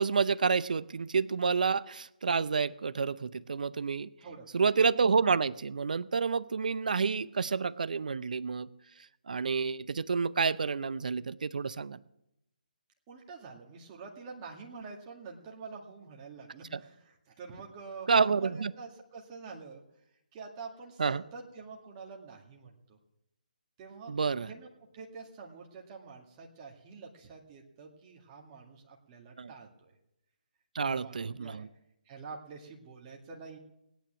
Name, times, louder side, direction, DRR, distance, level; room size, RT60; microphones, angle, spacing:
voice 1, 0.0-4.1 4.5-8.7 9.3-12.0 16.7-16.8 18.1-18.7 21.0-21.2 24.1-24.5 29.4-29.5 30.7-31.7, right 5 dB, 65° right, 16 dB, 0.6 m, -29 dB
voice 2, 4.2-4.7 13.1-19.8 20.3-23.0 23.8-24.1 24.4-24.7 24.9-29.9 30.8-31.7 32.1-33.6, right 4 dB, 25° right, -1 dB, 2.1 m, -47 dB
18.5 x 9.2 x 7.4 m, 0.84 s
figure-of-eight pair, 150°, 5 cm